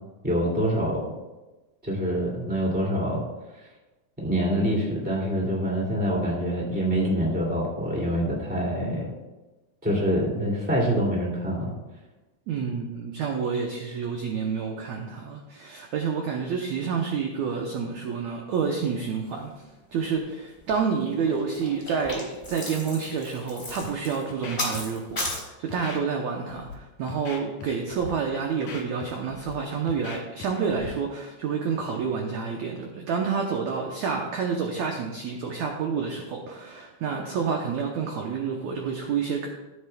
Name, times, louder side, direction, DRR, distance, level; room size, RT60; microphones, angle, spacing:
voice 1, 0.2-1.0 1.8-3.2 4.2-9.0 9.8-11.7, equal, 5° right, -3 dB, 1.5 m, -25 dB
voice 2, 12.5-19.5 19.9-39.5, right 6 dB, 80° right, 2 dB, 1.6 m, -29 dB
sound 1, 20.2-20.3 20.5-20.8 21.2-25.4, left 1 dB, 15° left, 3.1 m, -34 dB
Scratching (performance technique), 23.7-23.9 24.3-24.8 25.1-25.3 25.7-26.0 26.5-26.7 27.1-27.7 27.9-28.1 28.5-29.5 29.9-30.5 30.7-30.9, left 5 dB, 55° left, 2.7 m, -39 dB
15.5 x 7.9 x 2.3 m, 1.1 s
omnidirectional pair, 4.2 m